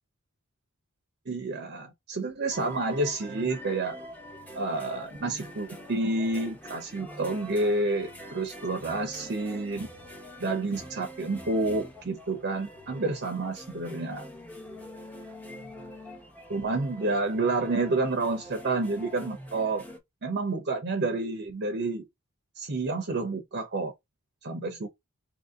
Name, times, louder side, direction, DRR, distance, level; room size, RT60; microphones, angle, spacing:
voice 1, 1.3-3.9 4.5-9.9 10.4-14.3 16.5-19.8 20.2-22.1 22.6-23.9 24.4-24.9, right 2 dB, 50° right, 0.7 m, -29 dB
sound 1, 2.5-20.0, equal, 10° left, 0.8 m, -44 dB
2.8 x 2.7 x 3.7 m
head